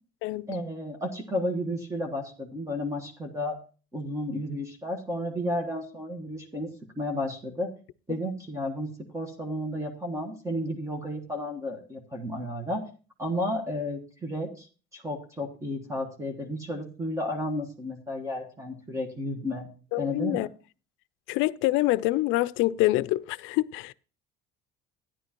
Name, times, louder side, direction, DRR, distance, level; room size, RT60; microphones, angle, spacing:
voice 1, 0.5-3.6 3.9-6.7 7.0-7.7 8.1-12.8 13.2-14.7 14.9-19.7 20.0-20.5, left 1 dB, 15° right, 1.3 m, -32 dB
voice 2, 19.9-20.5 21.3-23.9, left 18 dB, 75° left, 0.4 m, -26 dB
13.0 x 10.0 x 2.9 m
cardioid pair, 145°, 21 cm